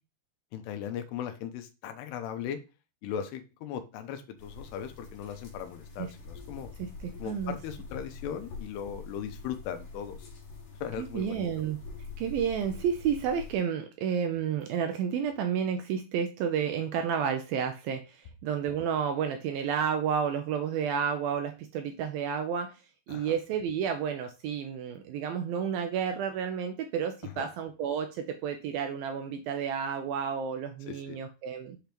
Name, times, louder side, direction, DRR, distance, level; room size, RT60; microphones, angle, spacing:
voice 1, 0.5-2.6 3.0-6.7 7.2-10.3 10.8-11.5 23.1-23.4 27.2-27.5 30.9-31.2, left 9 dB, 85° left, 7 dB, 2.9 m, -38 dB
sound 1, 4.4-13.5, left 4 dB, 55° left, 3.1 m, -45 dB
voice 2, 6.8-7.6 11.0-11.8 12.2-22.8 23.1-31.8, right 7 dB, 80° right, 6 dB, 2.2 m, -31 dB
8.0 x 5.1 x 3.0 m, 0.29 s
omnidirectional pair, 4.9 m